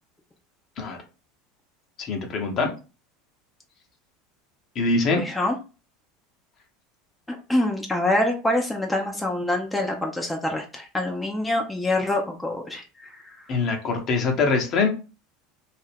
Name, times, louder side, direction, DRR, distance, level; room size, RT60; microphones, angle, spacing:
voice 1, 2.0-2.7 4.8-5.2 13.5-14.9, left 3 dB, 45° left, 3 dB, 0.8 m, -23 dB
voice 2, 5.1-5.6 7.3-13.4, left 1 dB, 10° left, 1 dB, 0.6 m, -26 dB
2.5 x 2.1 x 3.4 m, 0.32 s
hypercardioid pair, 80°, 0 cm